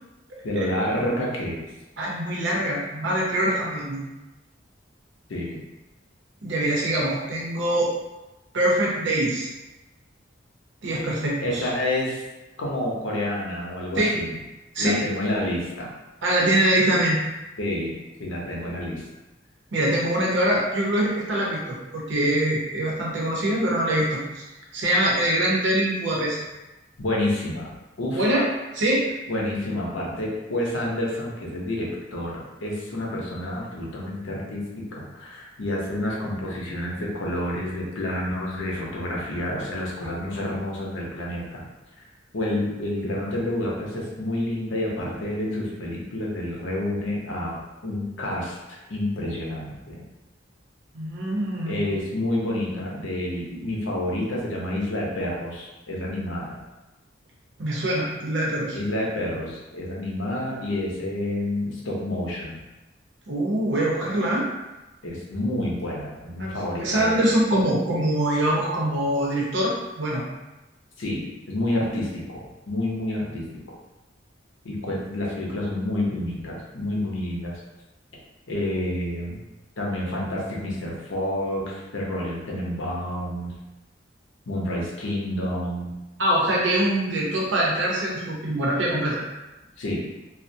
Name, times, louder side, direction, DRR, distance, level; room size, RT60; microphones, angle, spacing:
voice 1, 0.4-1.6 5.3-5.6 11.4-12.2 12.6-14.3 14.8-15.9 17.6-17.9 18.2-19.0 27.0-27.7 28.0-28.3 29.3-41.6 42.3-47.6 47.8-50.0 51.7-56.6 58.7-62.6 65.0-67.3 71.0-73.4 74.6-77.5 78.5-79.4 79.8-83.5 84.5-85.9 89.8-90.0, left 1 dB, 80° left, -3 dB, 0.6 m, -29 dB
voice 2, 2.0-4.0 6.4-7.9 8.5-9.5 10.8-11.7 14.0-14.1 14.7-15.0 16.2-17.2 19.7-24.2 24.7-26.4 28.1-28.5 28.7-29.1 50.9-51.8 57.6-58.8 63.3-64.5 66.4-70.2 86.2-89.2, right 1 dB, 70° right, -4 dB, 0.7 m, -23 dB
2.3 x 2.0 x 2.6 m, 1.0 s
head